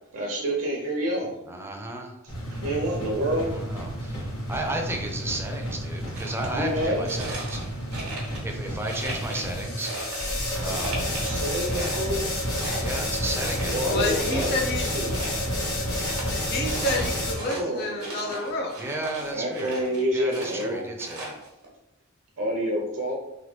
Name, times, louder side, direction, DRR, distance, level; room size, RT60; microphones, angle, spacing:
voice 1, 0.1-1.3 2.5-3.5 6.5-7.0 11.2-12.2 13.6-15.1 17.5-18.4 19.3-20.8 22.4-23.1, equal, 65° right, -1 dB, 0.6 m, -28 dB
voice 2, 1.5-2.2 3.4-7.6 8.4-9.9 10.6-11.0 12.8-14.0 18.8-19.7 20.1-21.4, right 2 dB, 10° right, 2 dB, 0.4 m, -33 dB
sound 1, 2.3-17.3, equal, 80° left, 1.1 m, -30 dB
sound 2, 6.0-6.5 7.1-8.6 8.9-10.5 10.7-11.4 11.6-15.5 15.8-20.0 20.3-21.7, right 2 dB, 90° right, 1.0 m, -38 dB
voice 3, 13.9-14.9 15.4-18.7, left 2 dB, 50° left, 0 dB, 0.6 m, -30 dB
3.1 x 2.2 x 3.0 m, 0.92 s
head